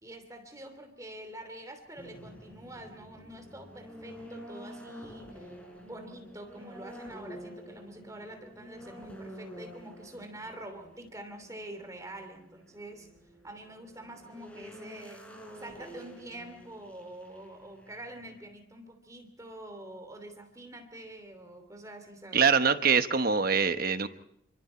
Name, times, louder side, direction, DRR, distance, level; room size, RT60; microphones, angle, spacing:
voice 1, 0.0-13.1 13.4-15.3 15.6-22.5, right 1 dB, 15° right, 6 dB, 2.9 m, -46 dB
sound 1, 2.0-18.4, equal, 5° left, 4.5 m, -49 dB
voice 2, 22.3-24.1, right 6 dB, 50° right, 10 dB, 1.1 m, -24 dB
27.5 x 24.5 x 4.4 m, 0.75 s
head